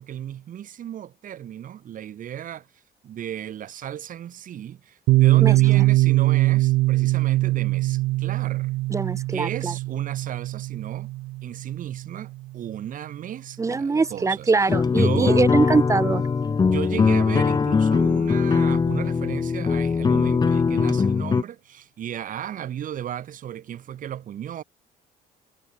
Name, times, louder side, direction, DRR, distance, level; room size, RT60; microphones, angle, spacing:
voice 1, 0.0-2.7 3.0-8.7 9.3-11.1 11.4-14.5 14.9-15.6 16.6-24.6, right 10 dB, 50° right, 1.5 m, -34 dB
Piano, 5.1-12.5, right 19 dB, 80° right, 0.7 m, -22 dB
voice 2, 5.4-5.8 8.9-9.7 13.6-16.2, right 4 dB, 20° right, 0.4 m, -23 dB
sound 1, 14.7-21.4, left 5 dB, 25° left, 0.9 m, -21 dB
cardioid pair, 110°, 17 cm